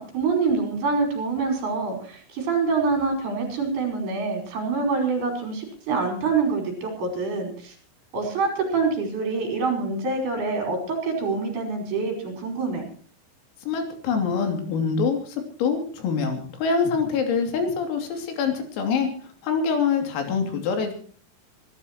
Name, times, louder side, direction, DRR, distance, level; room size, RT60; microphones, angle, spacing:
voice 1, 0.0-7.7 8.1-12.9, right 4 dB, 50° right, 3 dB, 7.0 m, -26 dB
voice 2, 13.7-19.1 19.4-20.9, left 5 dB, 80° left, 5 dB, 5.6 m, -25 dB
25.5 x 15.5 x 3.0 m, 0.43 s
omnidirectional pair, 5.9 m